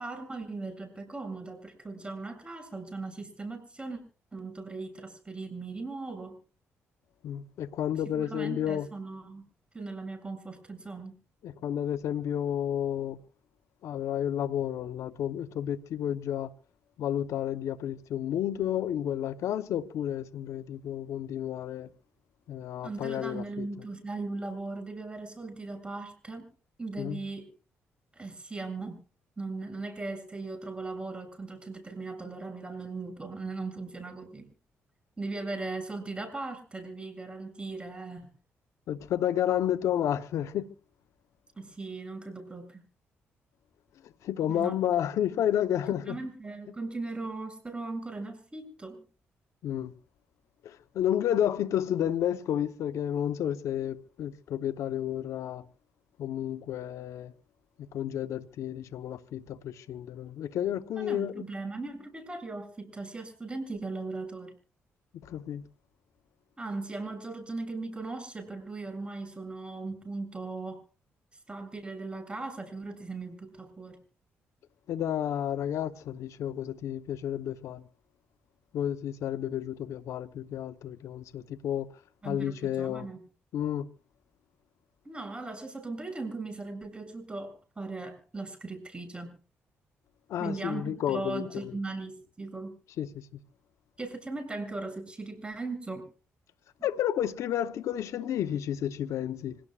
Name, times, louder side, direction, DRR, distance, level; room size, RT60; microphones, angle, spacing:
voice 1, 0.0-4.0 4.3-6.4 8.1-9.4 9.7-11.1 22.8-26.5 26.8-27.5 28.1-29.0 29.4-34.5 35.2-38.3 41.6-42.8 44.5-44.8 45.9-49.0 61.0-64.5 66.6-70.8 71.5-74.0 82.2-83.2 85.0-89.4 90.4-92.8 94.0-96.1, right 3 dB, 20° right, 7.5 m, -38 dB
voice 2, 7.2-8.9 11.4-13.2 13.8-16.5 17.0-21.9 22.5-23.7 27.0-27.2 38.9-40.7 44.2-46.2 49.6-49.9 50.6-55.7 56.2-57.3 57.9-61.5 65.2-65.6 74.9-77.8 78.7-81.9 82.2-83.1 83.5-83.9 90.3-91.7 93.0-93.3 96.8-99.6, left 10 dB, 75° left, 1.0 m, -31 dB
26.5 x 17.5 x 2.5 m
supercardioid pair, 65°, 5 cm